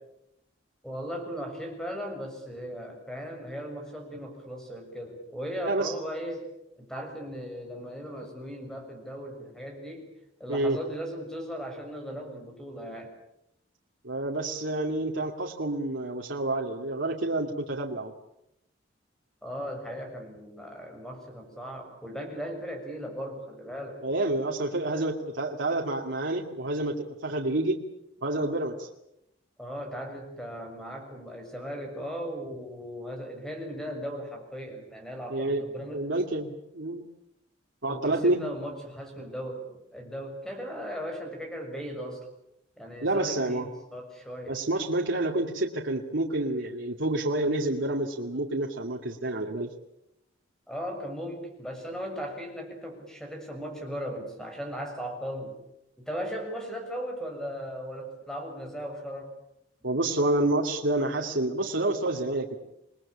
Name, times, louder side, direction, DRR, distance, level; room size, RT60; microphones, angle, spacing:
voice 1, 0.8-6.5 6.8-10.1 10.4-13.1 19.4-24.0 29.6-36.0 37.9-42.3 42.8-44.6 50.7-55.6 56.0-59.3, equal, 5° left, 3 dB, 6.7 m, -37 dB
voice 2, 10.5-10.8 14.0-18.1 24.0-27.8 28.2-28.9 35.3-35.6 35.9-37.0 37.8-38.4 43.0-43.7 44.5-49.7 59.8-62.6, right 2 dB, 80° right, 0 dB, 2.4 m, -28 dB
28.5 x 20.5 x 8.7 m, 0.82 s
head